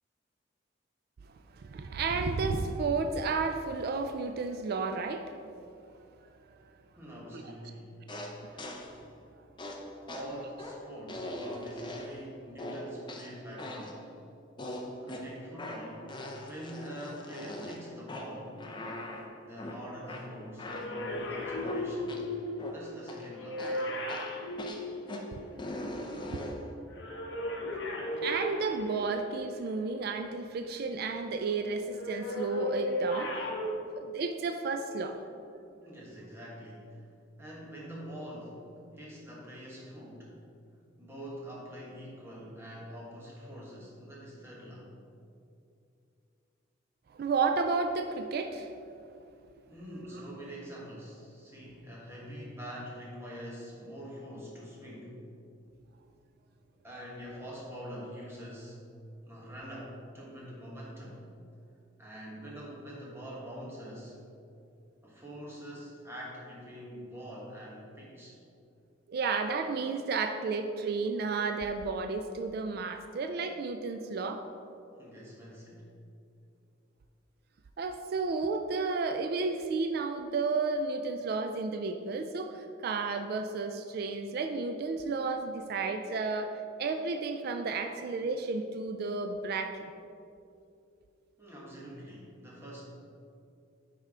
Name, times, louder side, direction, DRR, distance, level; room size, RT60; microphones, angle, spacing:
voice 1, 1.5-5.3 7.3-7.6 26.2-26.5 27.9-33.5 33.9-35.2 47.1-48.7 69.1-74.4 77.8-89.8, right 4 dB, 55° right, 6 dB, 0.3 m, -32 dB
voice 2, 7.0-7.9 10.1-14.0 15.0-18.6 19.5-22.1 22.7-23.7 35.8-37.1 37.4-38.7 38.9-40.4 41.0-44.9 49.7-55.2 56.8-58.8 59.2-61.2 62.0-64.2 65.0-68.4 75.0-75.9 91.4-92.8, equal, 15° right, -5 dB, 1.4 m, -45 dB
sound 1, 8.1-9.0 9.6-12.3 12.6-14.0 14.6-22.3 22.6-23.3 23.6-26.7, left 1 dB, 25° left, 0.5 m, -41 dB
sound 2, 20.6-25.7 26.9-29.5 31.9-33.7, left 1 dB, 65° left, 0.9 m, -35 dB
9.8 x 3.5 x 3.6 m, 2.5 s
head